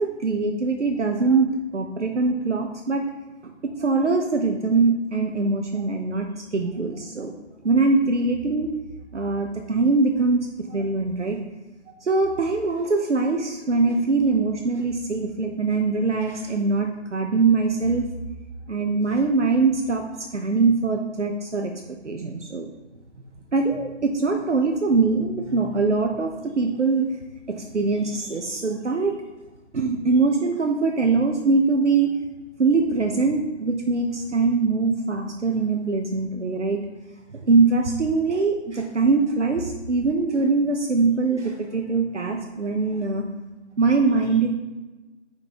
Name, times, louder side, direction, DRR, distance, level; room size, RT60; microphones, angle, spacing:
voice 1, 0.0-3.0 3.4-7.3 7.6-8.7 9.1-11.4 12.0-18.1 18.7-21.7 22.0-22.7 23.5-27.1 27.5-29.1 29.7-32.1 32.6-36.8 37.3-43.2 43.8-44.5, right 3 dB, 75° right, 3 dB, 0.9 m, -22 dB
6.8 x 5.3 x 3.0 m, 1.2 s
figure-of-eight pair, 145°, 36 cm